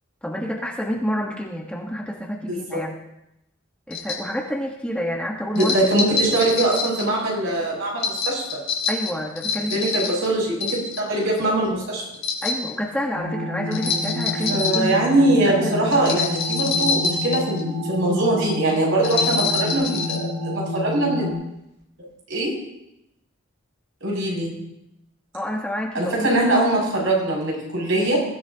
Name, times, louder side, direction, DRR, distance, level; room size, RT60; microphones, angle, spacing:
voice 1, 0.2-3.0 3.9-5.7 8.9-9.9 12.4-15.0 15.4-16.2 25.3-26.3, equal, 5° left, -1 dB, 1.3 m, -28 dB
sound 1, 3.9-4.2 5.5-7.1 8.0-10.3 10.6-11.2 12.1-12.7 13.7-14.9 15.9-17.6 19.0-20.2, left 4 dB, 60° left, 2.8 m, -25 dB
voice 2, 5.5-8.4 9.7-12.0 14.5-21.3 22.3-22.5 24.0-24.5 25.9-28.2, right 2 dB, 65° right, -2 dB, 7.1 m, -22 dB
sound 2, 13.2-21.3, left 1 dB, 50° right, 4.3 m, -29 dB
22.0 x 14.5 x 2.9 m, 0.86 s
head